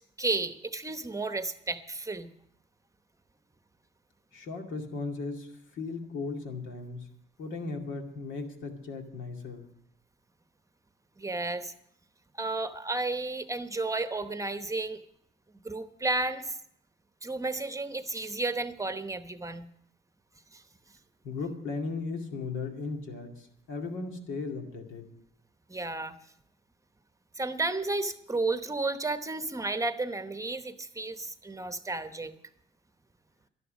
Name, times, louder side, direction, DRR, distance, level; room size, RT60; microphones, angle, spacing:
voice 1, 0.2-2.3 11.2-11.7 12.4-15.0 15.6-16.6 17.2-19.7 20.5-20.6 25.7-26.2 27.4-32.3, right 2 dB, 15° right, 10 dB, 0.9 m, -32 dB
voice 2, 4.3-7.1 7.4-9.7 21.2-25.0, left 4 dB, 80° left, 3 dB, 2.3 m, -36 dB
12.5 x 11.0 x 6.3 m, 0.72 s
cardioid pair, 90°, 20 cm